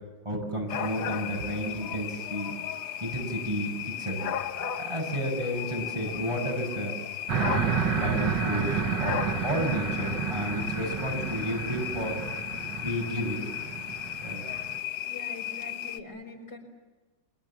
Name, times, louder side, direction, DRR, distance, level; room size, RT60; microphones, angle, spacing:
voice 1, 0.3-2.5 3.0-7.0 7.8-12.2 12.8-13.4 14.2-14.4, equal, 15° right, -1 dB, 7.2 m, -32 dB
sound 1, 0.7-16.0, left 10 dB, 85° left, 1.8 m, -35 dB
sound 2, 7.3-14.8, right 6 dB, 75° right, 1.9 m, -31 dB
voice 2, 15.0-16.6, left 2 dB, 65° left, 1 dB, 5.4 m, -44 dB
29.5 x 25.0 x 7.4 m, 1.2 s
omnidirectional pair, 2.0 m